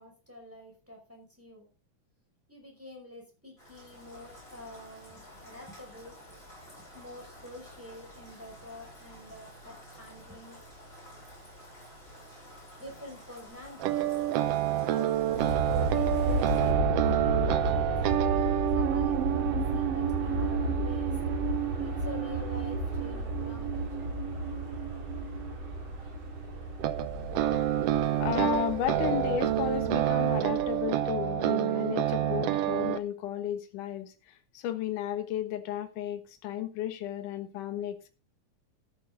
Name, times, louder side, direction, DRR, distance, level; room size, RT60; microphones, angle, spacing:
voice 1, 0.0-1.7 2.5-6.2 6.5-10.6 12.8-14.2 14.7-18.4 18.7-21.2 21.8-23.9, left 1 dB, 5° right, 0 dB, 4.9 m, -47 dB
Rain, 3.6-16.7, equal, 15° left, 6.1 m, -51 dB
sound 1, 13.8-25.7 26.8-33.0, right 12 dB, 80° right, 1.4 m, -29 dB
Aircraft, 15.2-31.2, right 1 dB, 40° right, 3.2 m, -33 dB
voice 2, 28.2-34.1 34.5-38.1, left 10 dB, 75° left, 8 dB, 2.9 m, -33 dB
13.5 x 9.6 x 3.7 m, 0.31 s
omnidirectional pair, 3.7 m